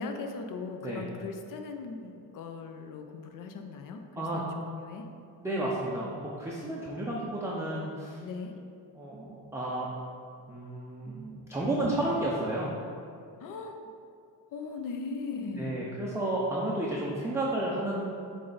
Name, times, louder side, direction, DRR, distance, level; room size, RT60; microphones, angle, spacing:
voice 1, 0.0-5.1 8.2-8.6 13.4-13.8 14.5-15.8, left 4 dB, 50° left, 5 dB, 0.7 m, -39 dB
voice 2, 5.4-8.2 8.9-9.9 10.5-12.7 15.5-18.0, right 1 dB, 5° right, -5 dB, 0.5 m, -32 dB
7.4 x 3.4 x 4.0 m, 2.4 s
cardioid pair, 135°, 41 cm